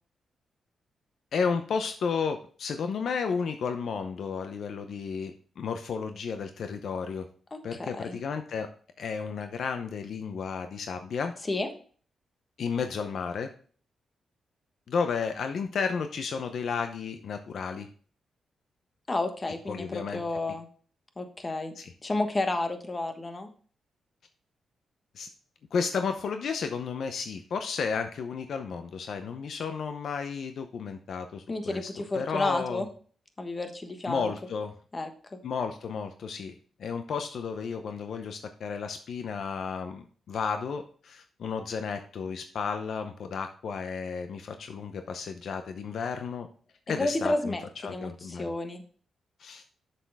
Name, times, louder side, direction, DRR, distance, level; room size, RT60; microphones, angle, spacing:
voice 1, 1.3-7.3 7.6-8.7 9.0-11.3 12.6-13.5 14.9-17.9 19.7-20.2 21.8-21.9 25.1-25.3 25.7-32.8 34.1-34.7 35.4-36.5 36.8-46.5 46.9-47.6 47.8-48.5 49.4-49.6, left 5 dB, 70° left, 7 dB, 0.6 m, -32 dB
voice 2, 7.5-8.2 11.5-11.7 19.1-20.7 21.2-21.7 22.0-23.5 31.5-32.9 33.4-34.3 34.9-35.4 47.0-47.6 47.9-48.8, left 2 dB, 30° left, 6 dB, 1.4 m, -31 dB
7.3 x 6.8 x 3.5 m, 0.43 s
cardioid pair, 75°, 0 cm